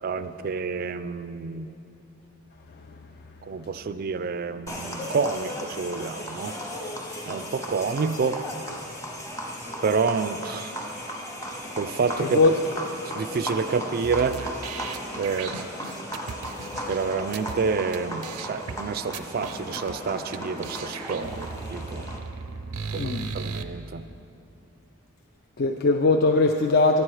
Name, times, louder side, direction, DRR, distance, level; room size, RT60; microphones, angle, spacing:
voice 1, 0.0-1.7 3.4-6.6 7.2-8.4 9.8-10.8 11.8-12.4 13.1-14.4 15.2-15.6 16.9-22.1 22.9-24.1, right 5 dB, 40° right, 12 dB, 0.3 m, -28 dB
sound 1, 4.7-22.2, equal, 15° left, 0.8 m, -36 dB
voice 2, 12.2-12.5 23.0-23.3 25.6-27.0, left 3 dB, 45° left, 3 dB, 0.4 m, -20 dB
sound 2, 14.0-17.6 17.9-18.0 18.2-18.8 19.1-19.9 20.3-20.4 20.6-23.6, right 5 dB, 90° right, 0.5 m, -36 dB
12.0 x 8.9 x 4.7 m, 2.9 s
head